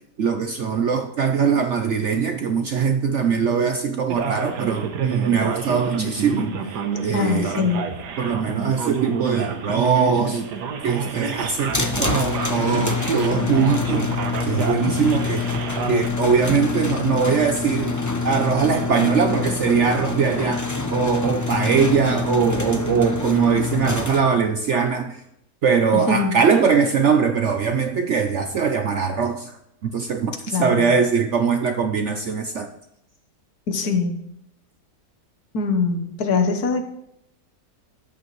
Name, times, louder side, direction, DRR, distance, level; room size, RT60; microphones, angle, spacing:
voice 1, 0.2-6.5 7.0-7.5 8.2-10.4 10.8-14.2 14.4-15.5 15.9-25.2 25.6-29.6 29.8-32.7, right 6 dB, 60° right, 6 dB, 0.8 m, -21 dB
Male speech man speaking, 4.1-16.1, right 6 dB, 80° right, 1.6 m, -28 dB
voice 2, 7.1-7.9 25.9-26.4 30.4-30.9 33.7-34.2 35.5-36.9, left 4 dB, 65° left, 6 dB, 1.6 m, -23 dB
sound 1, 11.7-24.2, left 4 dB, 20° left, 0.5 m, -26 dB
13.0 x 9.4 x 3.1 m, 0.80 s
omnidirectional pair, 1.8 m